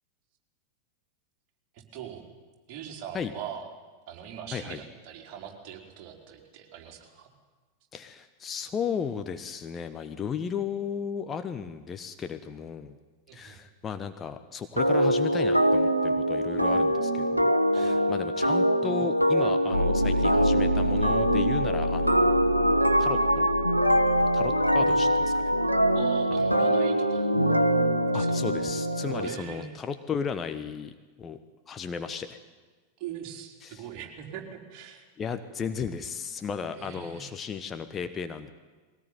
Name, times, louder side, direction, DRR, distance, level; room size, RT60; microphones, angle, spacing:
voice 1, 1.7-2.2 2.7-3.7 4.1-7.3 13.3-13.6 17.7-18.0 24.8-25.0 25.9-27.3 28.1-28.4 29.1-29.8 33.0-35.0 36.7-37.3, right 8 dB, 40° right, 1 dB, 4.3 m, -41 dB
voice 2, 7.9-13.0 13.3-22.3 23.0-23.6 24.2-25.5 28.1-30.9 31.2-31.4 31.7-32.4 33.6-33.8 35.2-38.5, left 6 dB, 20° left, 8 dB, 1.2 m, -35 dB
sound 1, 14.8-29.4, equal, 90° right, 1.1 m, -24 dB
sound 2, 19.7-26.0, equal, 90° left, 1.5 m, -31 dB
21.5 x 18.0 x 9.6 m, 1.3 s
figure-of-eight pair, 90°, 0 cm